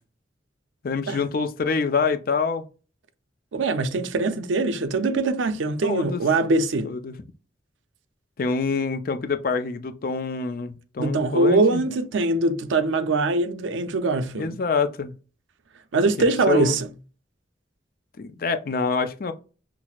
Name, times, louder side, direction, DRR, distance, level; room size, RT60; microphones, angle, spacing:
voice 1, 0.8-2.6 5.8-6.2 6.8-7.1 8.4-11.8 14.4-15.1 16.2-16.7 18.2-19.3, left 4 dB, 50° left, 0.4 m, -26 dB
voice 2, 3.5-6.9 11.0-14.6 15.9-16.9, right 3 dB, 85° right, 0.5 m, -22 dB
5.8 x 2.0 x 2.3 m
head